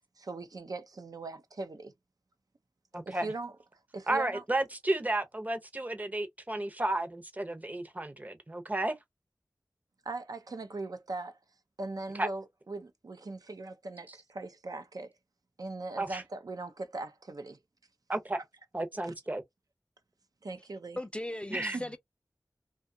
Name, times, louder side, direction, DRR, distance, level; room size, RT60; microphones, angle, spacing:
voice 1, 0.2-1.9 3.1-3.5 3.9-4.4 10.0-11.4 11.8-15.1 15.6-17.6 19.0-19.1 20.4-21.0 21.7-21.8, right 3 dB, 65° right, 0.5 m, -40 dB
voice 2, 2.9-3.3 4.1-9.0 12.2-12.3 16.0-16.2 18.1-18.4 18.7-19.4 21.5-21.8, right 2 dB, 25° right, 0.7 m, -32 dB
voice 3, 21.0-22.0, left 1 dB, 15° left, 0.4 m, -37 dB
2.7 x 2.3 x 2.6 m
wide cardioid pair, 65°, 7 cm